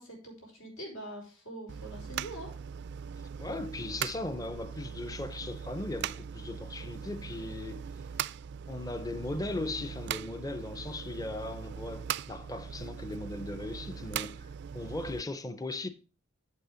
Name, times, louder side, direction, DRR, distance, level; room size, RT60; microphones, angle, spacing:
voice 1, 0.0-2.5, right 1 dB, 80° left, 4.9 m, -44 dB
sound 1, 1.7-15.2, right 8 dB, 55° right, 0.3 m, -40 dB
voice 2, 3.4-7.9 8.7-15.9, left 2 dB, 20° left, 0.6 m, -38 dB
8.4 x 7.4 x 5.0 m
head